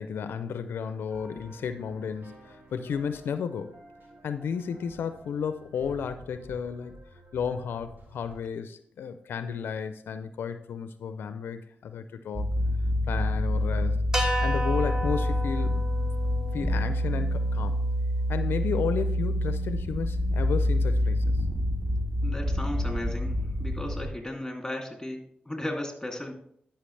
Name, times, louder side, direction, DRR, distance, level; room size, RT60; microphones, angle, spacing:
voice 1, 0.0-3.8 4.2-7.0 7.3-12.6 13.1-14.1 14.4-15.9 16.5-17.9 18.3-21.4, left 6 dB, 85° left, 11 dB, 0.4 m, -33 dB
sound 1, 1.1-8.4, right 1 dB, 65° right, 2.7 m, -51 dB
sound 2, 12.3-24.1, left 1 dB, 50° right, 2.8 m, -27 dB
sound 3, 14.1-18.5, right 1 dB, 15° right, 1.4 m, -34 dB
voice 2, 22.2-25.2 25.4-26.3, left 1 dB, 10° left, 2 dB, 2.6 m, -35 dB
11.0 x 5.7 x 3.3 m, 0.68 s
cardioid pair, 50°, 4 cm